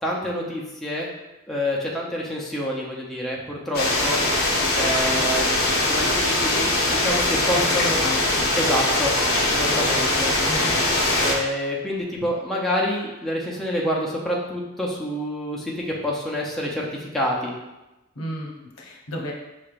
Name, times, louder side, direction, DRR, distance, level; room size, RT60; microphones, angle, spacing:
voice 1, 0.0-1.1 1.5-4.2 4.7-8.1 8.6-9.1 9.5-10.3 11.2-17.5, equal, ahead, -4 dB, 0.6 m, -27 dB
sound 1, 3.7-11.3, left 2 dB, 50° left, 0.9 m, -22 dB
voice 2, 7.5-8.4 9.7-10.8 18.2-19.3, left 1 dB, 85° left, -1 dB, 0.8 m, -33 dB
5.6 x 3.2 x 2.5 m, 0.99 s
head